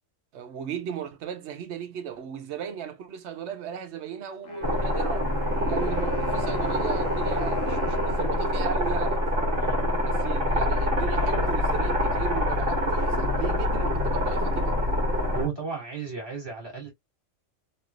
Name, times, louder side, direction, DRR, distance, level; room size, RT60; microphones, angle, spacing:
voice 1, 0.3-5.3 5.7-9.2 10.0-14.8, right 8 dB, 70° right, 0.8 m, -36 dB
Wind instrument woodwind instrument, 4.4-9.4, left 1 dB, 80° left, 1.2 m, -40 dB
sound 1, 4.6-15.5, left 1 dB, 45° right, 1.4 m, -25 dB
voice 2, 15.3-16.9, right 5 dB, 20° right, 1.7 m, -34 dB
3.3 x 2.4 x 2.3 m
omnidirectional pair, 1.3 m